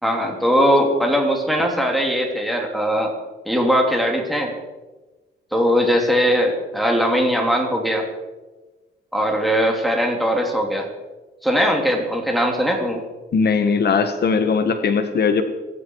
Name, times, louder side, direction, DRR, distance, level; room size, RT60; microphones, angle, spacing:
voice 1, 0.0-3.1 3.4-4.5 5.5-8.0 9.1-10.9 11.4-13.0, equal, ahead, 1 dB, 3.2 m, -20 dB
voice 2, 13.3-15.4, left 5 dB, 55° left, 7 dB, 1.5 m, -19 dB
24.5 x 9.9 x 4.8 m, 1.2 s
cardioid pair, 90°, 20 cm